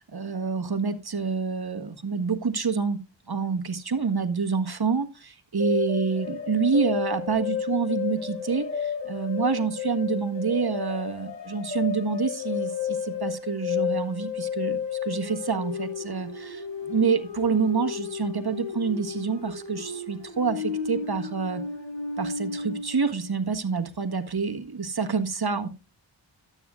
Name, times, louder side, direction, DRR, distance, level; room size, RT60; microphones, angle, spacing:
voice 1, 0.1-3.0 3.3-21.6 22.2-25.7, right 5 dB, 55° right, 1.6 m, -27 dB
sound 1, 5.6-23.0, left 7 dB, 65° left, 5.6 m, -32 dB
13.0 x 8.9 x 2.5 m
cardioid pair, 45°, 45 cm